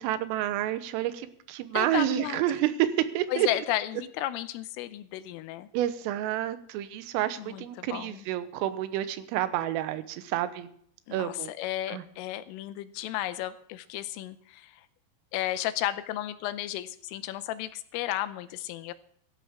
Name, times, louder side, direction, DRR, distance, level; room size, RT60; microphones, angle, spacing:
voice 1, 0.0-3.5 5.7-10.7 11.1-11.5 11.9-12.0, right 13 dB, 80° right, 12 dB, 3.5 m, -29 dB
voice 2, 1.7-2.4 3.3-5.7 7.4-8.3 11.1-14.9 15.3-18.9, left 14 dB, 85° left, 12 dB, 3.3 m, -33 dB
17.0 x 13.5 x 3.6 m, 0.64 s
omnidirectional pair, 5.9 m